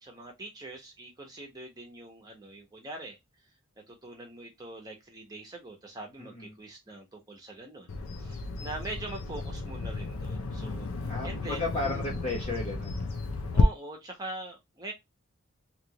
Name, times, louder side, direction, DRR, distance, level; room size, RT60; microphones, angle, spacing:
voice 1, 0.0-3.2 3.9-12.1 13.5-14.9, right 2 dB, 20° right, 1.0 m, -43 dB
Bird vocalization bird call bird song, 7.9-13.6, left 4 dB, 85° left, 0.6 m, -33 dB
voice 2, 11.1-13.1, left 2 dB, 30° left, 0.8 m, -34 dB
3.0 x 2.6 x 2.9 m
head